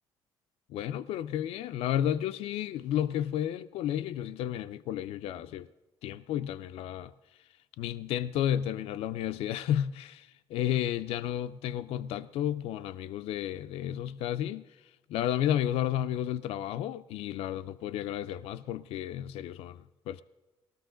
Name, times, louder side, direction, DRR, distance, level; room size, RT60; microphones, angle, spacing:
voice 1, 0.7-5.7 6.0-7.1 7.8-14.6 15.1-20.2, left 11 dB, 75° left, 0.4 m, -32 dB
19.0 x 13.0 x 3.8 m
supercardioid pair, 70°, 10 cm